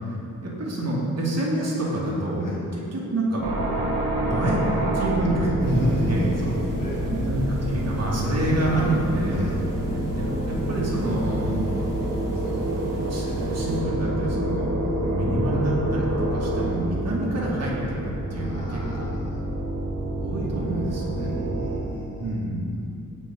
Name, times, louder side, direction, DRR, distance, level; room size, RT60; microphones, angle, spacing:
voice 1, 0.4-3.5 4.1-4.7 4.9-6.3 7.0-11.6 13.1-14.8 15.0-17.7 18.0-19.1 20.1-21.4 22.2-22.7, right 1 dB, 50° right, -5 dB, 2.4 m, -27 dB
sound 1, 3.4-21.8, right 1 dB, 85° right, 1.7 m, -28 dB
voice 2, 5.6-7.0 9.3-9.6 14.8-15.1 18.4-19.4 21.2-22.4, left 2 dB, 75° left, -4 dB, 2.2 m, -35 dB
sound 2, 5.6-13.8, right 1 dB, 10° right, 2.2 m, -37 dB
16.5 x 5.9 x 3.9 m, 2.6 s
wide cardioid pair, 145°, 33 cm